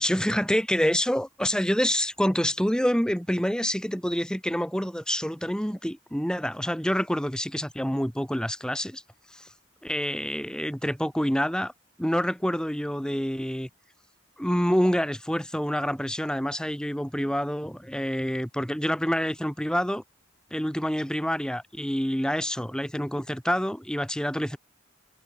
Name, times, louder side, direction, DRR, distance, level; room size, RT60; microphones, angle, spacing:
voice 1, 0.0-9.0 9.3-9.5 9.8-11.7 12.0-13.7 14.4-20.0 20.5-24.6, equal, 5° left, 3.1 m, -27 dB
head